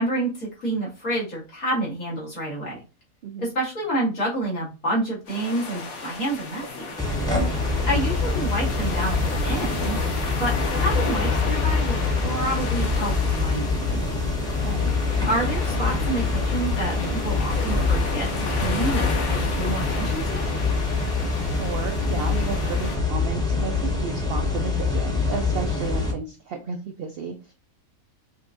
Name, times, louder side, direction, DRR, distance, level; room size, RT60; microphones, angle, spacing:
voice 1, 0.0-2.8 3.4-6.9 7.8-9.2 9.4-10.0 10.4-10.5 10.8-14.0 15.2-20.4, right 1 dB, 75° left, -6 dB, 2.4 m, -28 dB
sound 1, 5.3-23.0, left 3 dB, 60° left, 1.1 m, -34 dB
sound 2, 7.0-26.1, left 3 dB, 5° left, 0.6 m, -25 dB
voice 2, 7.4-7.7 14.6-14.9 21.6-27.5, right 5 dB, 75° right, 5 dB, 0.5 m, -33 dB
5.3 x 2.6 x 2.5 m, 0.30 s
omnidirectional pair, 1.5 m